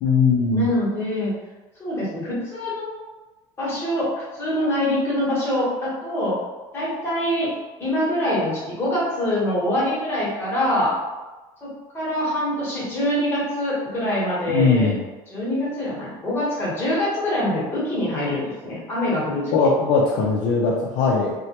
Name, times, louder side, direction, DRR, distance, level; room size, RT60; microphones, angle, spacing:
voice 1, 0.0-0.7 14.5-15.0 19.5-21.3, left 4 dB, 60° left, -3 dB, 0.4 m, -19 dB
voice 2, 0.5-1.3 1.8-2.9 3.6-6.4 6.7-7.5 7.8-10.9 11.6-14.9 15.3-19.5, left 1 dB, 20° left, -8 dB, 1.0 m, -24 dB
2.2 x 2.1 x 2.8 m, 1.2 s
cardioid pair, 125°, 13 cm